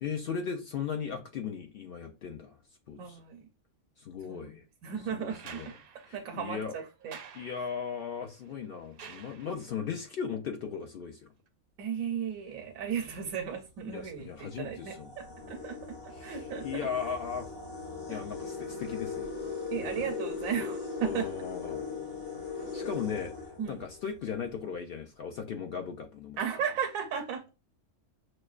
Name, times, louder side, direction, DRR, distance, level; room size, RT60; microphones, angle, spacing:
voice 1, 0.0-2.6 2.9-3.2 4.0-4.6 5.1-5.7 6.1-6.8 7.3-11.2 13.9-15.1 16.1-17.5 18.1-19.3 19.8-20.1 21.0-22.0 22.7-26.4, left 7 dB, 65° left, 0.6 m, -37 dB
voice 2, 3.0-3.5 4.3-4.6 4.8-5.7 6.1-7.2 11.8-16.9 18.1-18.2 19.7-21.3 22.8-23.1 23.6-23.8 26.4-27.5, right 8 dB, 85° right, 1.0 m, -35 dB
sound 1, 5.3-9.9 11.5-11.6, right 7 dB, 65° right, 0.6 m, -51 dB
sound 2, 12.8-13.1 13.9-14.0 14.5-24.2, left 4 dB, 85° left, 1.7 m, -39 dB
6.1 x 2.2 x 2.4 m
omnidirectional pair, 1.4 m